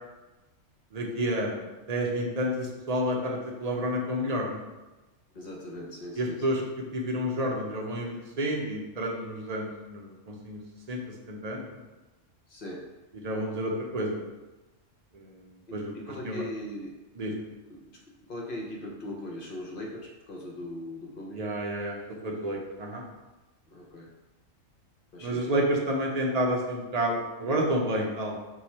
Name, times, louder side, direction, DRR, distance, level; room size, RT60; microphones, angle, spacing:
voice 1, 0.9-4.6 6.2-6.6 6.9-10.6 10.9-11.0 11.3-11.8 13.2-14.2 15.1-15.4 15.7-15.9 16.2-16.4 17.2-17.3 21.3-22.0 22.2-23.0 25.2-28.4, equal, 45° right, -1 dB, 0.5 m, -30 dB
voice 2, 5.3-6.6 12.5-12.9 15.7-17.0 17.7-18.0 18.3-21.4 23.7-24.1 25.1-25.6, left 1 dB, 55° left, -1 dB, 0.7 m, -40 dB
4.6 x 2.3 x 4.1 m, 1.1 s
omnidirectional pair, 1.4 m